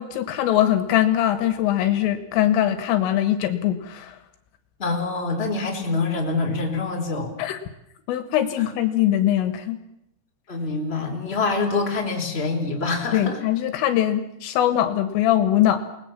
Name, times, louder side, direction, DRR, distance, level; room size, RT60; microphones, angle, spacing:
voice 1, 0.0-4.2 7.4-7.6 8.1-9.8 13.1-15.8, left 12 dB, 75° left, 10 dB, 3.9 m, -21 dB
voice 2, 4.8-7.3 10.5-13.4, left 3 dB, 15° left, 2 dB, 3.6 m, -25 dB
29.0 x 20.5 x 7.3 m, 0.80 s
omnidirectional pair, 5.9 m